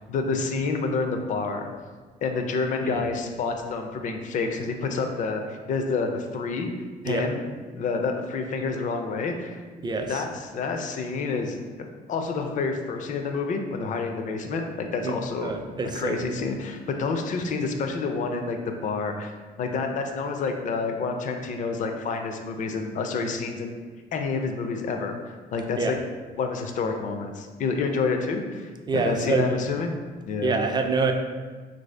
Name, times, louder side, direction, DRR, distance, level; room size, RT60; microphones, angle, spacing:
voice 1, 0.1-1.7 2.2-6.7 7.0-7.4 7.7-9.6 10.0-11.6 12.1-15.5 15.9-19.3 19.6-23.7 24.1-26.0 26.4-29.9 30.3-30.5, left 4 dB, 45° left, 5 dB, 0.4 m, -28 dB
voice 2, 9.8-10.2 15.0-15.1 15.4-16.3 25.8-25.9 28.9-29.6 30.4-31.1, right 4 dB, 25° right, 4 dB, 0.4 m, -26 dB
3.1 x 2.6 x 3.2 m, 1.4 s
cardioid pair, 95°, 18 cm